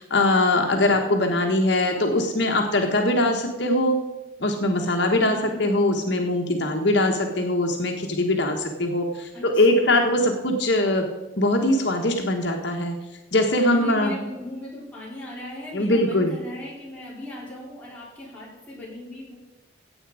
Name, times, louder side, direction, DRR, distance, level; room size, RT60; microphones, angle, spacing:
voice 1, 0.0-4.0 4.4-11.0 11.4-13.0 13.3-14.1 15.7-16.3, left 1 dB, 65° left, 2 dB, 1.4 m, -22 dB
voice 2, 5.3-5.6 9.3-10.1 13.7-19.4, left 1 dB, 5° left, -6 dB, 4.1 m, -38 dB
15.5 x 8.5 x 4.9 m, 1.1 s
head